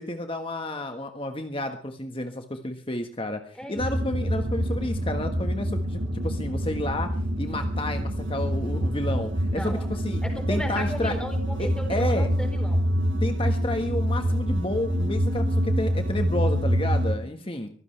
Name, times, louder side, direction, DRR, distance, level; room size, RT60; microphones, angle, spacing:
voice 1, 0.0-7.1 7.4-10.2 10.5-11.1 11.6-12.3 13.2-17.7, left 1 dB, 25° left, 6 dB, 1.4 m, -31 dB
voice 2, 3.5-4.0 9.5-12.8 17.2-17.6, equal, 5° left, 4 dB, 4.0 m, -36 dB
sound 1, 3.8-17.2, equal, 75° right, 4.8 m, -26 dB
24.0 x 16.0 x 3.3 m, 0.39 s
head